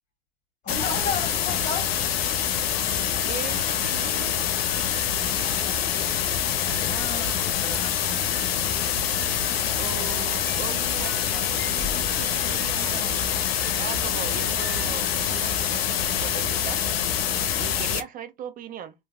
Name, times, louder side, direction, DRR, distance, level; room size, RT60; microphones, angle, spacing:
voice 1, 0.6-1.9 5.2-8.6 17.4-17.9, left 4 dB, 25° left, 1.6 m, -36 dB
sound 1, 0.7-18.0, left 9 dB, 80° left, 0.5 m, -25 dB
sound 2, 2.0-15.7, left 2 dB, 5° left, 0.8 m, -43 dB
voice 2, 3.2-4.4 9.8-13.3 13.6-17.0 17.6-18.9, right 9 dB, 30° right, 0.4 m, -38 dB
2.8 x 2.5 x 2.2 m
hypercardioid pair, 95°, 30 cm